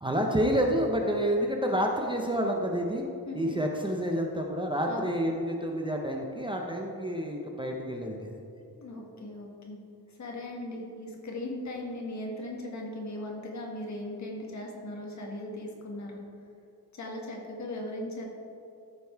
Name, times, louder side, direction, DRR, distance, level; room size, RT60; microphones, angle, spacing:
voice 1, 0.0-3.0 3.3-8.4, equal, 15° right, 1 dB, 0.6 m, -29 dB
voice 2, 8.8-9.8 10.2-16.2 16.9-18.3, left 1 dB, 50° left, -1 dB, 1.7 m, -38 dB
13.5 x 5.3 x 4.5 m, 2.7 s
wide cardioid pair, 180°, 37 cm